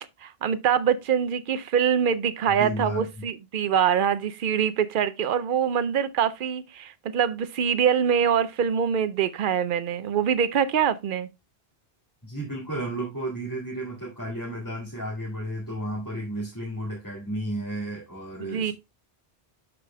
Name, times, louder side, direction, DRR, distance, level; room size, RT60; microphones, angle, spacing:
voice 1, 0.2-11.3 18.4-18.7, right 8 dB, 60° right, 0.7 m, -24 dB
voice 2, 2.6-3.2 12.2-18.7, right 1 dB, 20° left, 2.1 m, -33 dB
12.0 x 4.9 x 2.2 m
omnidirectional pair, 1.1 m